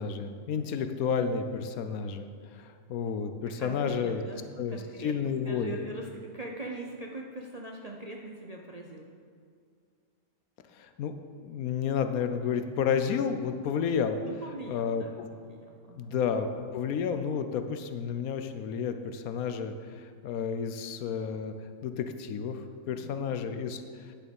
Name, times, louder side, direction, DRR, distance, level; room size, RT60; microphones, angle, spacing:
voice 1, 0.0-4.2 4.6-5.8 10.7-11.1 11.4-14.2 14.7-15.4 16.0-21.5 21.8-24.1, left 7 dB, 75° left, 8 dB, 1.1 m, -31 dB
voice 2, 3.5-9.1 14.2-16.2 22.9-23.3, right 2 dB, 45° right, 0 dB, 0.5 m, -42 dB
10.0 x 6.6 x 5.3 m, 2.2 s
omnidirectional pair, 1.5 m